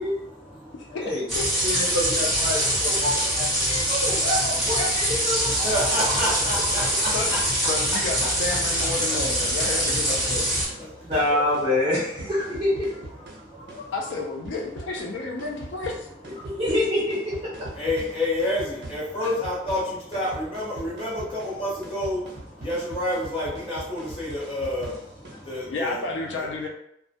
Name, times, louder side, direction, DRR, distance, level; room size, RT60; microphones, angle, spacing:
voice 1, 0.2-1.0 3.6-3.9 5.4-7.4 10.7-11.2 13.3-13.9 16.4-16.6 17.7-26.0, left 1 dB, 30° left, -7 dB, 0.9 m, -29 dB
voice 2, 0.8-1.4 7.1-10.5 13.9-16.1 19.2-19.3 25.3-25.4 25.7-26.7, left 3 dB, 80° left, 0 dB, 0.4 m, -31 dB
sound 1, 1.3-10.7, equal, ahead, 0.9 m, -24 dB
voice 3, 1.6-5.7 11.0-13.2 13.5-13.8 16.4-17.7, left 1 dB, 25° right, -10 dB, 0.7 m, -27 dB
sound 2, 6.0-25.5, right 1 dB, 65° right, 0.7 m, -42 dB
2.2 x 2.1 x 2.7 m, 0.76 s
head